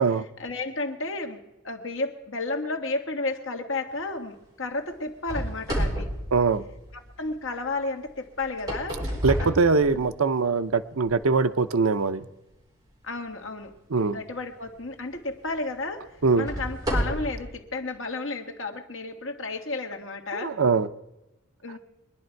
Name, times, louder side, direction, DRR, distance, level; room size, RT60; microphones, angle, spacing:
voice 1, 0.4-6.1 6.9-9.1 9.4-9.5 9.9-10.1 13.0-13.7 14.1-16.1 16.4-20.6 21.6-21.8, left 3 dB, 65° left, 3 dB, 1.8 m, -32 dB
sound 1, 5.3-7.2 8.4-10.3 11.0-11.1 11.8-11.9 14.5-14.7 15.2-15.3 16.2-17.4, right 1 dB, 15° right, 4.2 m, -30 dB
voice 2, 6.3-6.6 9.2-12.3 13.9-14.2 16.2-16.5 20.3-20.9, right 4 dB, 80° right, 9 dB, 0.7 m, -22 dB
24.0 x 10.5 x 4.6 m, 0.99 s
head